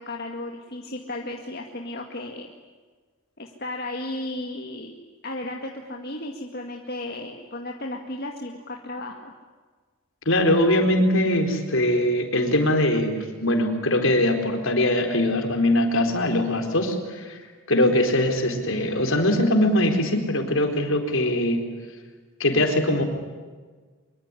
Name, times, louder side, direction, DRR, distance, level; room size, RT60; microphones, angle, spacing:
voice 1, 0.0-2.5 3.4-9.3, left 1 dB, 45° left, 2 dB, 2.1 m, -34 dB
voice 2, 10.3-17.4 17.7-21.6 22.4-23.0, left 1 dB, 65° left, 5 dB, 4.3 m, -22 dB
24.5 x 24.0 x 9.9 m, 1.4 s
head